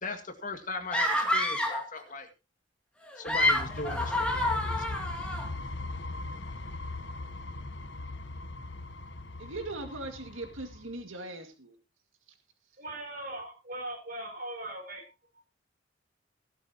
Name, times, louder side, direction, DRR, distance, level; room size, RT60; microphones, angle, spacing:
voice 1, 0.0-2.3 3.2-4.9, left 3 dB, 40° left, 6 dB, 1.9 m, -38 dB
sound 1, 0.9-1.9 3.1-5.5, left 1 dB, 5° left, 2.6 m, -28 dB
sound 2, 3.3-10.9, left 2 dB, 60° left, 1.2 m, -39 dB
voice 2, 9.4-11.8, right 2 dB, 85° right, 6 dB, 2.1 m, -40 dB
voice 3, 12.8-15.4, right 1 dB, 45° right, 1 dB, 6.7 m, -40 dB
16.0 x 12.5 x 2.9 m, 0.29 s
head